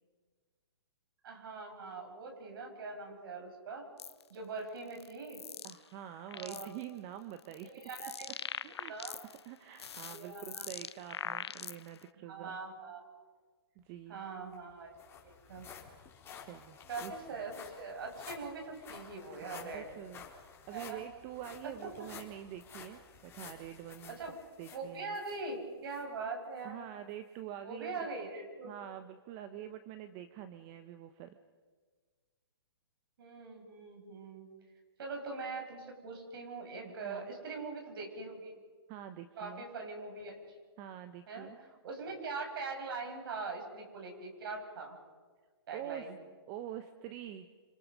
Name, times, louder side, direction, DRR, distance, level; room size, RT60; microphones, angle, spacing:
voice 1, 1.2-3.9 4.3-5.4 6.3-6.7 7.7-8.3 8.9-9.2 10.1-10.7 12.3-13.1 14.1-15.0 15.2-15.7 16.9-19.9 20.7-21.0 21.6-22.1 24.1-24.3 24.7-26.8 27.6-28.7 33.2-34.5 35.0-38.5 39.4-40.4 41.3-41.5 41.8-45.0 45.7-46.1, right 4 dB, 60° right, 2 dB, 7.2 m, -42 dB
sound 1, 4.0-4.2 4.9-5.8 6.1-6.8 7.4-9.4 9.7-12.0, left 7 dB, 85° left, 0.8 m, -43 dB
voice 2, 5.6-7.9 8.6-12.6 13.8-14.2 16.4-17.1 19.4-24.2 24.6-25.1 26.6-28.1 28.6-31.3 36.8-37.4 38.9-39.6 40.8-41.6 45.7-46.1 46.5-47.5, right 11 dB, 30° right, 9 dB, 1.2 m, -46 dB
sound 2, 14.2-14.3 14.5-25.4 25.9-26.0 26.6-26.7, left 6 dB, 20° left, 4.1 m, -52 dB
28.0 x 26.5 x 5.5 m, 1.5 s
hypercardioid pair, 140°, 13 cm